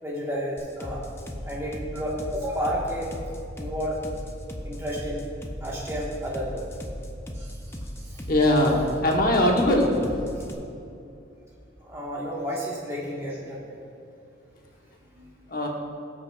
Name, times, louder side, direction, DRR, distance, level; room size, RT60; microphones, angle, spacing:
voice 1, 0.0-1.0 1.4-3.1 3.6-4.0 4.6-5.2 5.6-6.6 7.3-8.2 11.8-13.7 15.1-15.3, equal, 15° right, -5 dB, 1.5 m, -32 dB
sound 1, 0.6-10.5, equal, 15° left, 0.5 m, -37 dB
voice 2, 8.3-9.9 15.5-15.7, left 1 dB, 50° left, 0 dB, 1.2 m, -21 dB
17.0 x 6.1 x 2.4 m, 2.7 s
head